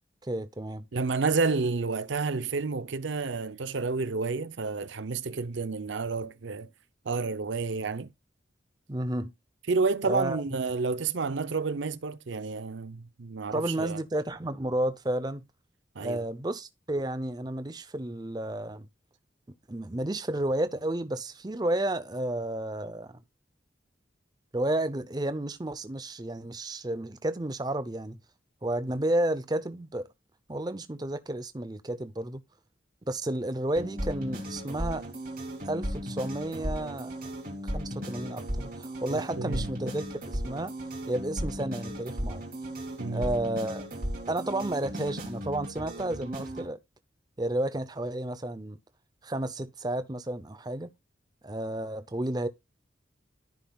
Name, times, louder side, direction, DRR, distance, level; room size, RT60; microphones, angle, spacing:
voice 1, 0.2-0.9 8.9-9.3 10.1-10.4 13.5-15.4 16.0-18.9 19.7-23.2 24.5-28.2 28.6-30.1 30.5-32.4 33.1-35.0 35.6-37.2 37.6-40.1 40.3-40.7 41.1-42.4 43.1-43.8 44.3-46.8 47.4-48.8 49.2-50.9 51.4-52.5, right 1 dB, 20° right, 0.6 m, -31 dB
voice 2, 0.9-6.7 7.1-8.1 9.7-14.0 16.0-16.2 39.1-39.7 43.0-43.3, right 4 dB, 70° right, 0.6 m, -30 dB
sound 1, 33.8-46.7, equal, 45° right, 3.2 m, -36 dB
13.5 x 5.6 x 2.3 m
head